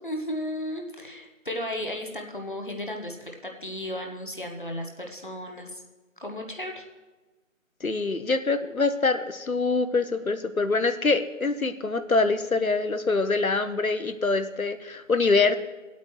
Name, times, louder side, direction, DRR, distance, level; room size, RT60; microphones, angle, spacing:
voice 1, 0.0-5.8 6.2-6.8, left 1 dB, 40° left, 2 dB, 1.1 m, -34 dB
voice 2, 7.8-15.6, left 3 dB, 90° left, 10 dB, 1.0 m, -24 dB
17.5 x 8.4 x 3.1 m, 1.2 s
figure-of-eight pair, 165°, 41 cm